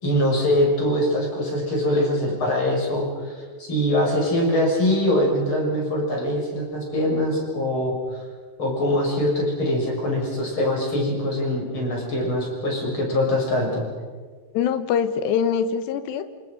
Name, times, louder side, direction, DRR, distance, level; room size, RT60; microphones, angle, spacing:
voice 1, 0.0-3.3 3.6-8.2 8.6-13.8, left 1 dB, 30° left, -1 dB, 6.9 m, -23 dB
voice 2, 14.5-16.2, left 7 dB, 85° left, 10 dB, 3.3 m, -23 dB
27.5 x 27.0 x 5.3 m, 1.5 s
omnidirectional pair, 4.8 m